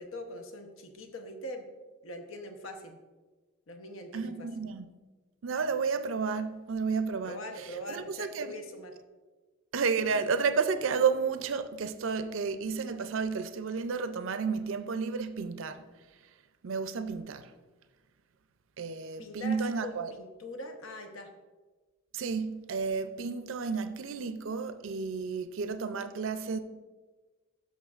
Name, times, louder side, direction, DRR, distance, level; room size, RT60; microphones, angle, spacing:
voice 1, 0.0-1.7 2.0-3.0 3.7-4.5 7.2-8.9 19.2-21.3, left 1 dB, 80° left, 0.9 m, -42 dB
voice 2, 4.1-4.9 5.4-8.5 9.7-15.9 16.6-17.5 18.8-20.1 22.1-26.6, right 5 dB, 75° right, 0.5 m, -31 dB
13.0 x 5.8 x 2.4 m
head